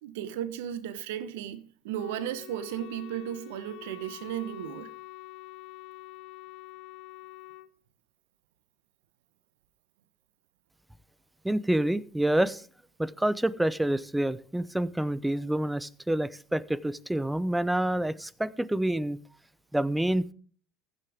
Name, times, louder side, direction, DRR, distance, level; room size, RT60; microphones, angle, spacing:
voice 1, 0.0-4.9, right 10 dB, 75° right, 1.2 m, -35 dB
Wind instrument woodwind instrument, 1.9-7.7, left 17 dB, 65° left, 0.7 m, -46 dB
voice 2, 11.4-12.6 13.0-19.2 19.7-20.3, right 1 dB, 5° right, 0.8 m, -27 dB
15.5 x 11.0 x 3.6 m
hypercardioid pair, 75°, 0 cm